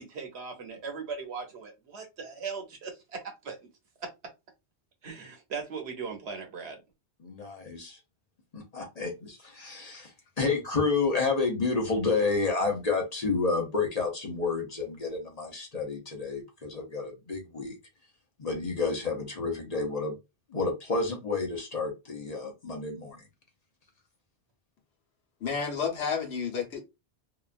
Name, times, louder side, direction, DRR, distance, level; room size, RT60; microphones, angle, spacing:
voice 1, 0.0-3.7 4.0-4.1 5.0-6.8, right 5 dB, 75° right, 1.0 m, -39 dB
voice 2, 7.2-8.0 8.5-10.1 10.4-17.8 18.4-20.2 20.5-23.3, left 4 dB, 40° left, 0.7 m, -30 dB
voice 3, 25.4-26.8, left 6 dB, 70° left, 1.1 m, -30 dB
2.9 x 2.3 x 2.4 m
omnidirectional pair, 1.1 m